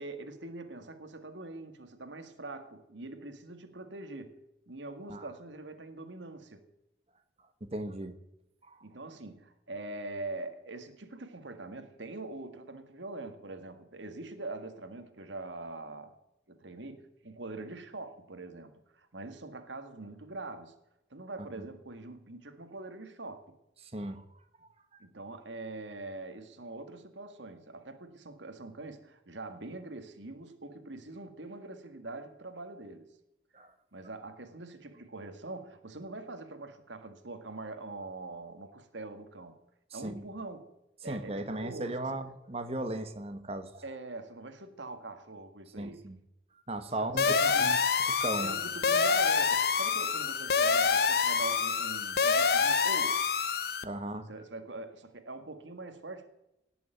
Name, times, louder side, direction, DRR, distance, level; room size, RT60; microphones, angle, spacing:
voice 1, 0.0-4.4 4.7-6.7 8.8-16.1 16.5-20.7 21.1-23.6 25.0-33.1 33.9-39.6 39.9-40.7 41.0-42.2 43.8-46.1 47.0-47.7 48.4-53.2 54.3-56.3, right 2 dB, 85° right, 1.9 m, -43 dB
voice 2, 7.6-8.2 8.7-8.8 21.6-21.7 23.8-24.2 24.9-25.0 33.5-33.7 39.9-40.2 41.0-43.8 45.8-46.2 46.7-47.8 48.0-48.6 53.8-54.3, right 1 dB, 35° right, 1.4 m, -37 dB
sound 1, 47.2-53.8, left 5 dB, 55° left, 0.8 m, -27 dB
18.5 x 7.0 x 9.0 m
head